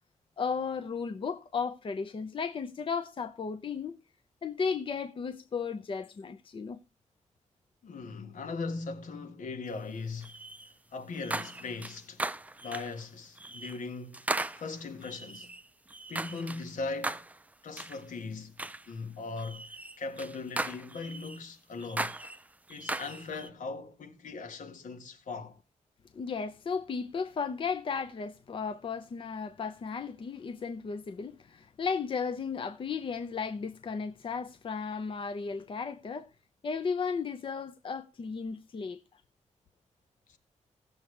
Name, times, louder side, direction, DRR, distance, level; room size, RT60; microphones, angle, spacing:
voice 1, 0.4-4.0 4.4-6.8 26.1-36.3 36.6-39.0, left 5 dB, 45° left, 0.7 m, -35 dB
voice 2, 7.8-10.3 10.9-12.2 12.6-15.5 16.1-17.2 17.6-18.5 18.9-22.1 22.7-25.6 40.3-40.4, left 4 dB, 85° left, 1.7 m, -39 dB
sound 1, 10.2-10.7 11.1-13.0 13.4-13.8 14.1-16.7 17.0-17.4 17.8-18.0 18.6-18.9 19.4-21.4 21.8-23.5, right 2 dB, 10° right, 0.4 m, -37 dB
16.5 x 7.2 x 3.3 m
wide cardioid pair, 145°, 13 cm